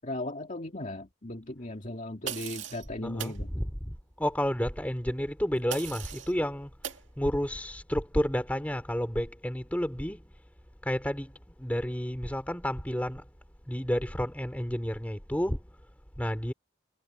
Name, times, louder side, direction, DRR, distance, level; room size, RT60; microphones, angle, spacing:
voice 1, 0.0-3.5, left 1 dB, 40° left, 2.2 m, -37 dB
sound 1, 2.3-2.9 3.2-3.4 5.7-6.3 6.8-7.0, right 9 dB, 75° right, 2.0 m, -38 dB
voice 2, 3.0-6.7 7.2-10.2 10.8-11.3 11.6-13.2 13.7-15.6 16.2-16.5, equal, 10° left, 2.8 m, -31 dB
head